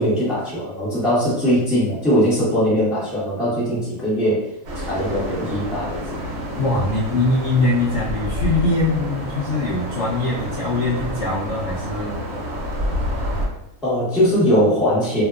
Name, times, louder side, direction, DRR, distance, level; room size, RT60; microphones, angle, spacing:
voice 1, 0.0-4.4 4.8-6.0 13.8-15.2, equal, ahead, -9 dB, 0.5 m, -20 dB
sound 1, 4.6-13.5, equal, 65° right, 1.0 m, -28 dB
voice 2, 6.6-12.1, left 2 dB, 70° left, -7 dB, 0.7 m, -22 dB
2.7 x 2.2 x 2.3 m, 0.82 s
omnidirectional pair, 1.7 m